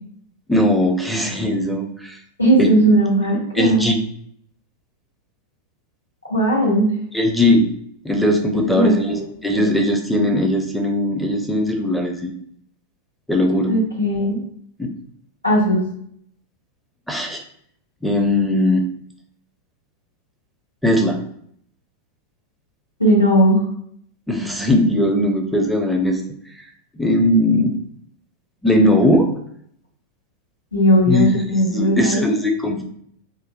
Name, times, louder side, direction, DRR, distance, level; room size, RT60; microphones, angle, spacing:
voice 1, 0.5-2.2 2.6-2.7 3.5-4.0 7.1-7.7 8.0-9.2 9.4-12.3 13.3-13.8 14.8-14.9 17.1-17.4 18.0-18.8 20.8-21.2 24.3-26.2 27.0-27.7 28.6-29.3 31.1-31.3 31.7-32.8, left 1 dB, ahead, 2 dB, 0.6 m, -19 dB
voice 2, 2.4-3.8 6.3-6.9 8.7-9.2 9.5-9.7 13.7-14.4 15.4-15.8 23.0-23.6 30.7-32.3, right 1 dB, 85° left, -4 dB, 1.1 m, -17 dB
3.7 x 2.1 x 2.6 m, 0.66 s
figure-of-eight pair, 90°, 0 cm